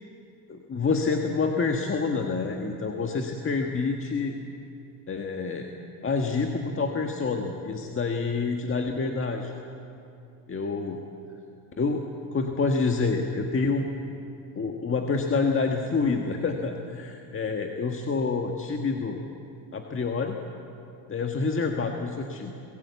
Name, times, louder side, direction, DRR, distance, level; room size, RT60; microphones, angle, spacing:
voice 1, 0.5-4.3 5.1-5.7 6.0-9.5 10.5-11.0 11.8-12.0 12.3-13.9 14.6-19.2 19.7-20.4 21.1-22.5, left 4 dB, 30° left, 3 dB, 1.6 m, -27 dB
23.0 x 16.0 x 8.3 m, 2.7 s
supercardioid pair, 90°, 43 cm